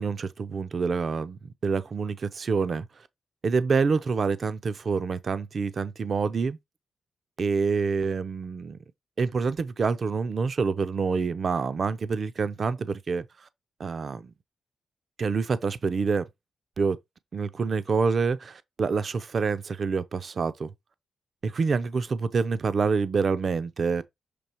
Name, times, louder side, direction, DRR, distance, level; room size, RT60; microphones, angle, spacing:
voice 1, 0.0-2.9 3.4-6.6 7.4-8.8 9.2-13.2 13.8-14.3 15.2-16.3 16.8-17.0 17.3-20.7 21.4-24.0, right 5 dB, 45° right, 0.5 m, -27 dB
6.8 x 3.3 x 4.4 m
wide cardioid pair, 145°, 0 cm